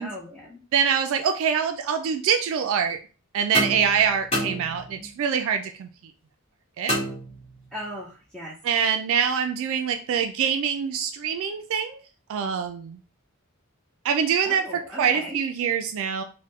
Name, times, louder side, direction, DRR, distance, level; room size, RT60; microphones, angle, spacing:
voice 1, 0.0-0.6 7.7-8.5 14.4-15.4, equal, 5° left, -5 dB, 0.5 m, -38 dB
voice 2, 0.7-3.0 3.3-6.1 6.8-7.0 8.6-12.0 12.3-13.0 14.0-16.2, right 7 dB, 65° right, 6 dB, 0.3 m, -24 dB
sound 1, 3.5-5.2 6.9-7.8, equal, 30° left, 1.1 m, -30 dB
3.5 x 2.1 x 3.0 m, 0.36 s
head